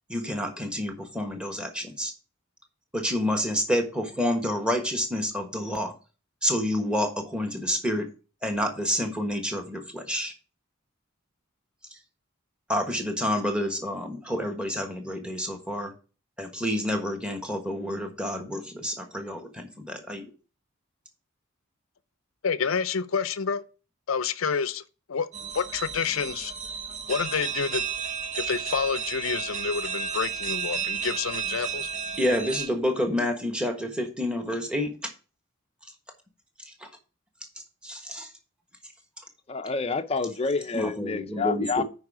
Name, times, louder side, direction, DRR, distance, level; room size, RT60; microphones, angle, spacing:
voice 1, 0.1-2.1 2.9-5.9 6.4-8.1 8.4-10.3 12.7-15.9 16.4-20.3 32.2-34.9 36.8-36.9 37.8-38.3 40.7-41.8, equal, 5° right, 1.3 m, -29 dB
voice 2, 22.4-23.6 24.1-24.8 25.1-25.3 25.5-26.5 27.1-27.8 28.4-31.9, left 6 dB, 75° left, 0.5 m, -28 dB
sound 1, 25.3-32.7, right 6 dB, 35° right, 0.8 m, -32 dB
voice 3, 39.5-41.8, left 4 dB, 30° left, 0.5 m, -28 dB
9.6 x 4.8 x 4.9 m
head